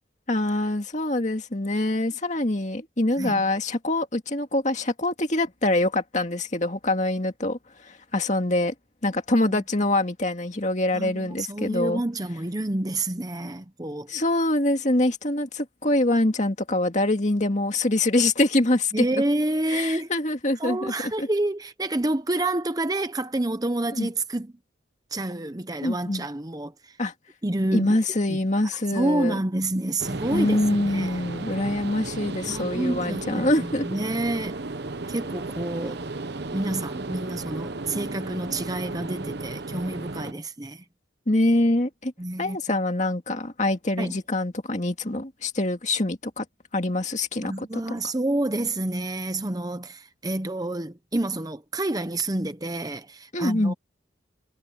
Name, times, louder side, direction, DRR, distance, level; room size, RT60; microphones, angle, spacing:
voice 1, 0.3-8.7 9.0-12.0 14.1-19.0 19.7-21.3 23.9-24.1 25.8-26.3 27.0-27.1 27.7-29.4 30.3-34.0 41.3-42.1 42.4-46.4 46.7-47.8 53.3-53.7, left 1 dB, 35° left, 2.1 m, -25 dB
voice 2, 3.2-3.5 9.4-9.6 10.9-14.1 18.9-20.1 20.6-24.5 25.1-27.0 27.4-28.0 28.3-31.2 32.5-34.6 35.1-36.0 36.5-40.8 42.2-42.6 44.0-44.2 47.4-53.7, right 1 dB, 20° right, 0.7 m, -28 dB
sound 1, 30.0-40.3, right 3 dB, 55° right, 1.0 m, -34 dB
head